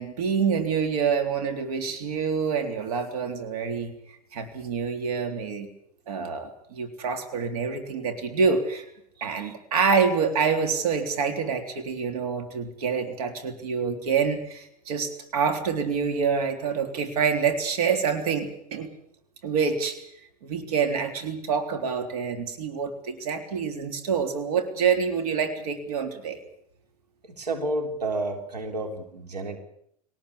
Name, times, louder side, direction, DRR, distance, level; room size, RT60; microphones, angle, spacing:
voice 1, 0.0-3.9 4.3-5.7 6.1-8.8 9.2-18.9 19.4-20.0 20.4-26.4, right 6 dB, 65° right, 6 dB, 3.6 m, -26 dB
voice 2, 9.2-9.5 27.3-29.6, right 2 dB, 90° right, 4 dB, 3.7 m, -31 dB
23.0 x 19.0 x 8.5 m, 0.72 s
hypercardioid pair, 95°, 20 cm